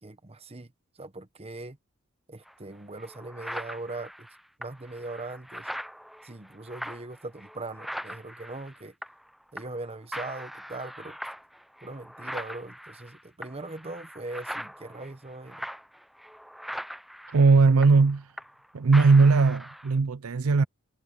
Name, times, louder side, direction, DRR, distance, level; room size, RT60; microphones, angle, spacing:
voice 1, 0.0-1.8 2.3-4.3 4.6-5.7 6.2-8.9 9.5-11.2 11.8-15.7, right 2 dB, 30° right, 1.1 m, -40 dB
sound 1, 2.5-2.6 3.0-9.3 9.6-9.9 10.1-18.7 18.9-19.9, equal, ahead, 0.6 m, -41 dB
voice 2, 17.3-18.3 18.7-20.6, right 4 dB, 75° right, 0.5 m, -19 dB
head